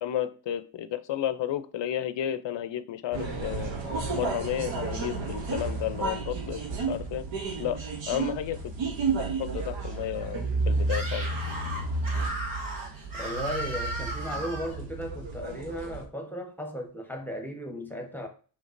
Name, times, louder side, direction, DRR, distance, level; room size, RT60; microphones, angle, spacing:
voice 1, 0.0-3.7 4.1-7.2 7.6-7.8 8.1-8.6 9.2-11.3, left 11 dB, 70° left, 0.6 m, -32 dB
sound 1, 3.1-16.0, right 3 dB, 80° right, 0.9 m, -32 dB
Screaming, 10.8-14.8, right 1 dB, 45° right, 1.6 m, -35 dB
voice 2, 13.2-18.3, equal, 5° left, 0.9 m, -36 dB
5.1 x 3.5 x 2.5 m
cardioid pair, 75°, 45 cm